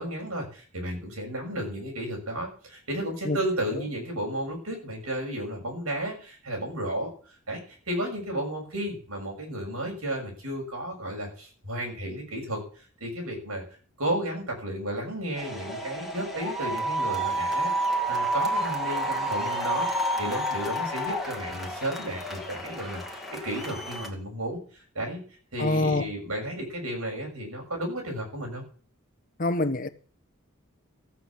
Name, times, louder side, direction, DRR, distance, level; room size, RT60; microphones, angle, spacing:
voice 1, 0.0-7.1 7.5-13.6 14.0-19.9 20.2-25.2 25.5-28.6, right 1 dB, 90° right, 6.6 m, -33 dB
sound 1, 15.3-24.1, right 1 dB, ahead, 2.3 m, -30 dB
voice 2, 25.6-26.1 29.4-29.9, left 2 dB, 40° left, 1.1 m, -25 dB
14.0 x 8.7 x 7.1 m
head